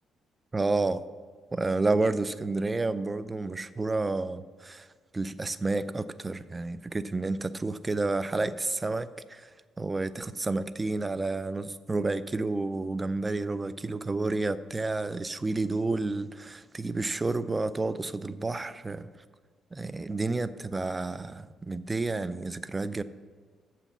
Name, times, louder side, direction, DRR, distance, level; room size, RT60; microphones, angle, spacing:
voice 1, 0.5-1.0 1.5-4.9 5.1-9.5 9.8-19.1 19.7-23.0, right 3 dB, 20° right, 15 dB, 0.4 m, -30 dB
7.0 x 5.8 x 7.0 m, 1.5 s
cardioid pair, 90°, 0 cm